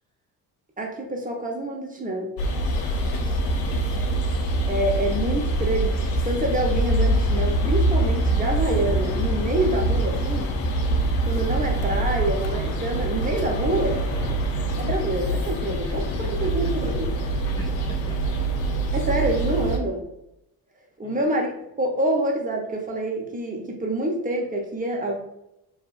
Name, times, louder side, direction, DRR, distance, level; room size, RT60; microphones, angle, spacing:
voice 1, 0.8-2.3 4.7-10.5 11.2-14.0 14.8-16.1 16.4-17.1 18.9-20.0 21.0-21.5 21.8-25.2, right 1 dB, 15° right, 1 dB, 0.7 m, -26 dB
sound 1, 2.4-19.8, right 1 dB, 80° left, 0.6 m, -24 dB
voice 2, 2.7-3.4 14.1-14.5 15.9-16.9 17.6-18.4 21.0-21.2, left 1 dB, 10° left, -1 dB, 0.3 m, -43 dB
2.7 x 2.6 x 2.4 m, 0.83 s
hypercardioid pair, 50°, 47 cm